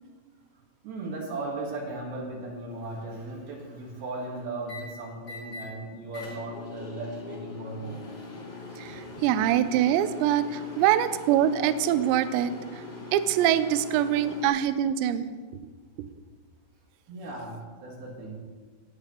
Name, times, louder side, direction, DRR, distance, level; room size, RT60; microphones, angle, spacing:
voice 1, 0.8-8.0 10.5-10.8 17.1-18.4, right 2 dB, 65° right, -2 dB, 2.9 m, -37 dB
sound 1, 2.9-3.3 4.6-4.8 5.2-5.7 6.1-14.5, left 3 dB, 45° left, 1.0 m, -42 dB
voice 2, 8.8-12.8 13.1-15.3 16.0-16.1, right 10 dB, 85° right, 11 dB, 2.5 m, -24 dB
18.0 x 7.8 x 3.0 m, 1.5 s
omnidirectional pair, 5.6 m